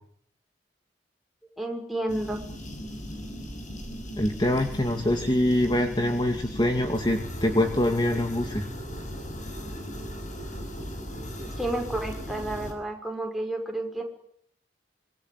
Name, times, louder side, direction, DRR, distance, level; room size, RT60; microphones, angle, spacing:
voice 1, 1.6-2.4 11.4-14.0, right 1 dB, ahead, 2 dB, 5.9 m, -31 dB
sound 1, 2.1-12.7, equal, 45° left, 6.7 m, -37 dB
voice 2, 4.2-8.7, left 1 dB, 25° left, 5 dB, 2.2 m, -24 dB
26.5 x 23.0 x 9.7 m, 0.68 s
head